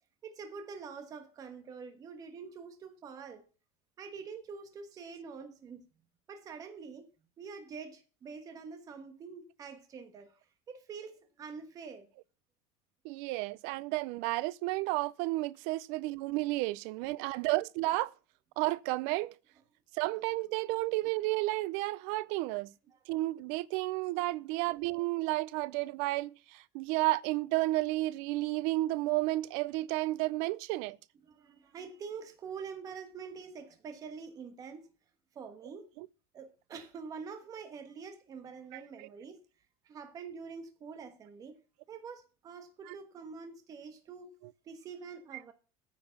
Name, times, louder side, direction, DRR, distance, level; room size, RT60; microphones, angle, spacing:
voice 1, 0.2-3.4 4.0-5.8 6.3-7.1 7.4-10.3 10.7-12.1 17.3-17.4 31.3-34.9 35.3-35.9 36.3-39.4 39.9-41.6 41.9-44.3 44.7-45.5, right 5 dB, 25° right, 1.3 m, -46 dB
voice 2, 13.0-18.1 18.6-19.4 19.9-22.7 23.1-31.0 36.0-36.1 38.7-39.1 42.9-43.0, right 19 dB, 60° right, 0.5 m, -32 dB
9.7 x 7.0 x 5.7 m
cardioid pair, 165°, 14 cm